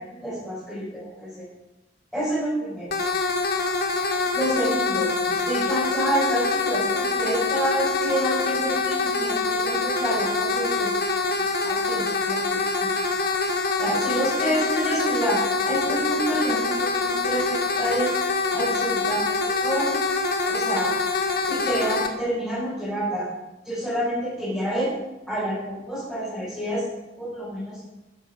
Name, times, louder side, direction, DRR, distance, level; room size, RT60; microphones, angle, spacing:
voice 1, 0.0-1.5 2.1-2.9 4.3-10.9 11.6-12.9 13.8-18.1 18.5-20.0 20.5-20.9 21.5-23.3 23.6-24.9 25.3-26.9 27.2-27.8, right 1 dB, 5° left, -10 dB, 5.7 m, -28 dB
sound 1, 2.9-22.1, left 3 dB, 55° left, 1.6 m, -25 dB
13.0 x 10.0 x 6.4 m, 1.0 s
head